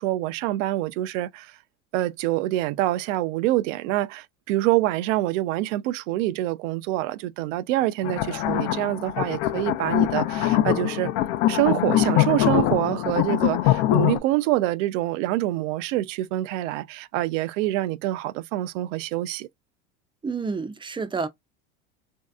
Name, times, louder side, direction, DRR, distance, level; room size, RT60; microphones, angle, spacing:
voice 1, 0.0-1.6 1.9-11.1 11.5-19.5, right 15 dB, 75° right, 0.5 m, -26 dB
sound 1, 8.0-14.2, left 13 dB, 65° left, 0.6 m, -23 dB
voice 2, 20.2-21.3, right 4 dB, 15° right, 0.4 m, -29 dB
3.1 x 2.7 x 2.3 m
supercardioid pair, 100°, 39 cm